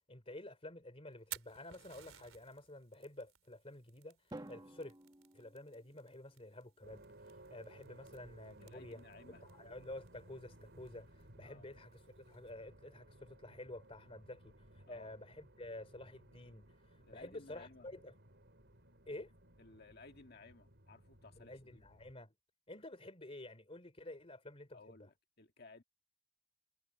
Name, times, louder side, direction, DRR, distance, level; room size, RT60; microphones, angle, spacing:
voice 1, 0.1-5.0 5.3-9.0 9.4-18.1 19.1-19.3 21.4-22.3 22.7-25.1, left 1 dB, 30° left, 3.2 m, -51 dB
Fire, 1.1-12.5, right 13 dB, 90° right, 3.4 m, -57 dB
Drum, 4.3-6.4, right 1 dB, 20° right, 1.3 m, -53 dB
sound 1, 6.8-22.1, right 1 dB, 60° right, 5.5 m, -60 dB
voice 2, 8.6-9.4 11.4-11.7 14.8-15.2 17.0-17.9 19.6-21.8 24.7-25.8, left 3 dB, 50° left, 1.9 m, -58 dB
head